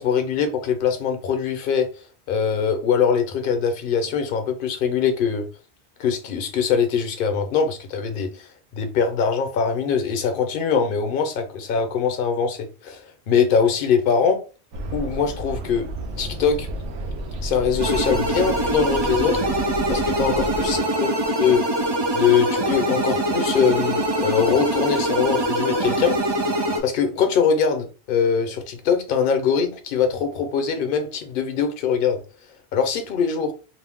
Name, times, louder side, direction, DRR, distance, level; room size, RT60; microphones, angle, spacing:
voice 1, 0.0-1.9 2.3-5.5 6.0-8.5 8.7-14.4 14.9-15.9 16.2-16.7 17.4-19.4 19.9-21.1 21.4-21.6 22.1-26.2 26.8-32.2 32.7-33.5, left 6 dB, 60° left, 0.7 m, -22 dB
sound 1, 14.7-20.8, right 1 dB, 80° right, 0.8 m, -32 dB
sound 2, 17.8-26.8, right 1 dB, 40° right, 0.3 m, -23 dB
2.5 x 2.0 x 3.4 m
omnidirectional pair, 1.1 m